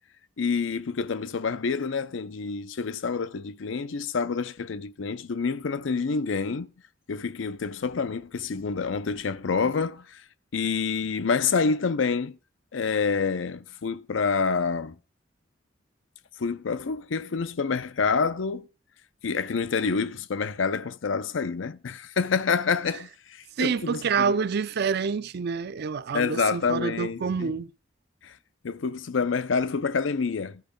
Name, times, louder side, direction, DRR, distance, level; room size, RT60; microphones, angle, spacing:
voice 1, 0.4-6.7 7.1-10.2 10.5-12.4 12.7-15.0 16.4-18.7 19.2-24.3 26.1-27.5 28.2-28.4 28.6-30.6, left 5 dB, 85° left, 0.5 m, -27 dB
voice 2, 23.6-27.7, right 6 dB, 60° right, 0.4 m, -27 dB
13.0 x 4.8 x 5.2 m
head